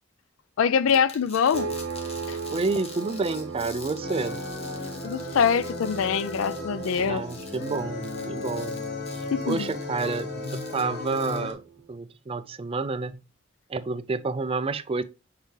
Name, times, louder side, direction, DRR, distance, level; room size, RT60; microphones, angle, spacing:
voice 1, 0.6-1.8 2.3-2.4 5.0-7.2 9.3-9.7, left 7 dB, 70° left, 0.4 m, -24 dB
sound 1, 0.9-11.5, left 3 dB, 30° left, 1.3 m, -46 dB
sound 2, 1.5-11.9, right 5 dB, 80° right, 0.8 m, -39 dB
voice 2, 2.5-4.4 6.9-8.8 9.1-11.6 11.9-13.2 13.7-15.0, right 3 dB, 25° right, 0.4 m, -29 dB
sound 3, 4.0-11.5, left 2 dB, 50° left, 1.2 m, -35 dB
6.6 x 4.7 x 3.2 m
head